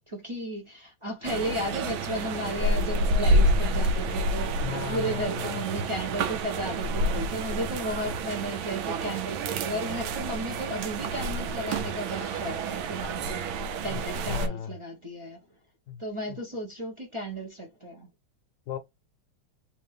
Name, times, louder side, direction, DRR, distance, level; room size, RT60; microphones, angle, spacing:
voice 1, 0.1-15.4 16.0-18.1, right 1 dB, 35° right, 0.5 m, -34 dB
sound 1, 1.2-14.5, right 1 dB, 75° right, 1.4 m, -28 dB
voice 2, 4.5-5.6 13.8-14.0 14.3-14.7 15.9-16.0 16.3-16.4 18.7-18.8, left 9 dB, 65° left, 1.1 m, -35 dB
3.4 x 2.9 x 3.4 m
omnidirectional pair, 2.3 m